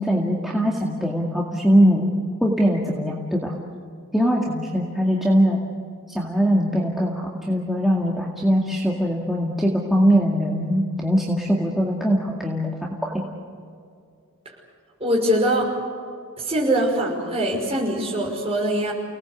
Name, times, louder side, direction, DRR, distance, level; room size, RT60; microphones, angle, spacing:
voice 1, 0.0-2.1 2.4-3.5 4.1-5.6 6.1-12.7 13.0-13.2, equal, ahead, -3 dB, 2.1 m, -21 dB
voice 2, 15.0-15.7 16.4-18.9, right 1 dB, 25° right, -2 dB, 5.9 m, -22 dB
30.0 x 18.5 x 8.3 m, 2.3 s
head